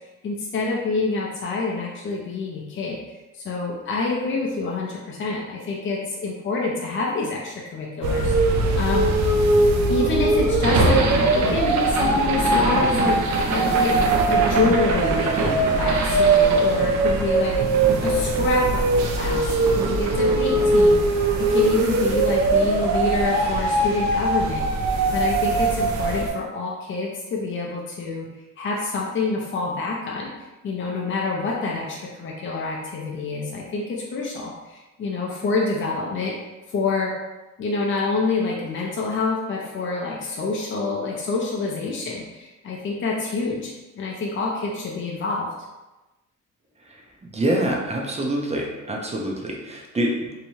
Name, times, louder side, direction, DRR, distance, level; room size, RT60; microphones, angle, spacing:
voice 1, 0.2-3.0 3.3-9.1 9.9-13.2 13.5-14.0 14.3-17.6 18.0-28.3 28.6-30.3 30.6-36.3 36.7-37.1 37.6-45.5, left 3 dB, 40° left, -2 dB, 0.5 m, -27 dB
sound 1, 8.0-26.3, right 2 dB, 70° right, 0.5 m, -20 dB
voice 2, 47.3-50.3, right 1 dB, 20° right, -1 dB, 0.5 m, -25 dB
2.7 x 2.2 x 3.0 m, 1.1 s
cardioid pair, 90°, 30 cm